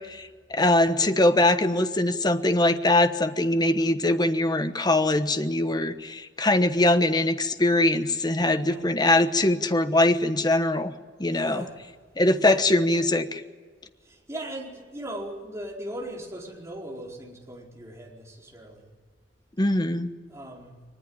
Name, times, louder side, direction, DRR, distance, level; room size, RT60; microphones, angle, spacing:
voice 1, 0.0-10.9 11.2-11.6 12.2-13.4 19.6-20.1, left 1 dB, 25° left, 10 dB, 1.2 m, -22 dB
voice 2, 8.5-8.9 11.3-11.8 12.3-12.7 14.0-18.9 20.3-20.8, right 1 dB, 15° right, -1 dB, 4.5 m, -38 dB
22.5 x 20.0 x 8.9 m, 1.5 s
head